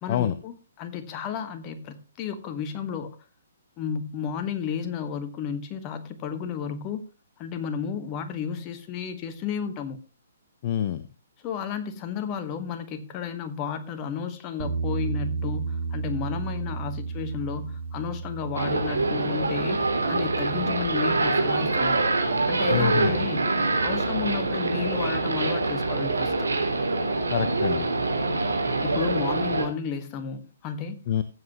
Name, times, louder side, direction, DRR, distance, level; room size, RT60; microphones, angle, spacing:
voice 1, 0.0-3.2 3.8-7.0 7.4-10.0 11.4-22.0 22.5-23.4 23.8-26.5 28.8-31.0, left 7 dB, 30° left, 9 dB, 1.6 m, -32 dB
voice 2, 10.6-11.0 22.7-23.2 27.3-27.9 31.1-31.2, left 10 dB, 45° left, 13 dB, 0.8 m, -26 dB
Bass guitar, 14.6-20.8, right 4 dB, 50° right, 2.6 m, -33 dB
sound 1, 18.5-29.7, right 3 dB, 85° right, 3.0 m, -25 dB
15.5 x 7.8 x 3.0 m, 0.33 s
hypercardioid pair, 130°, 0 cm